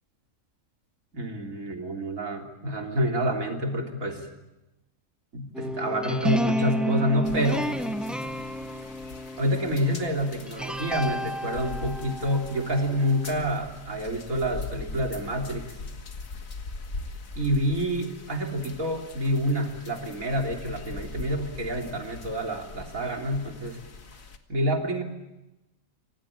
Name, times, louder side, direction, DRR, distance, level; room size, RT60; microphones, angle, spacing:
voice 1, 1.1-4.3 5.3-7.8 9.4-15.7 17.4-23.8 24.5-25.0, equal, 85° right, 2 dB, 3.8 m, -28 dB
sound 1, 5.5-13.6, equal, ahead, 0.9 m, -31 dB
sound 2, 7.2-24.4, left 3 dB, 80° left, 2.1 m, -41 dB
26.0 x 18.0 x 8.8 m, 1.0 s
omnidirectional pair, 1.4 m